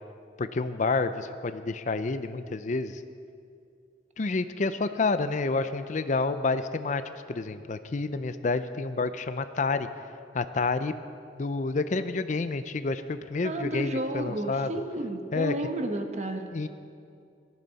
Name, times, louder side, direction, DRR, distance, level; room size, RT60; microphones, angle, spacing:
voice 1, 0.4-3.0 4.2-7.0 7.3-9.9 10.3-10.9 11.4-14.7 15.3-15.5 16.5-16.7, left 3 dB, 40° left, 11 dB, 0.5 m, -29 dB
voice 2, 13.4-16.5, right 1 dB, 40° right, 5 dB, 1.1 m, -32 dB
19.0 x 14.0 x 4.1 m, 2.4 s
head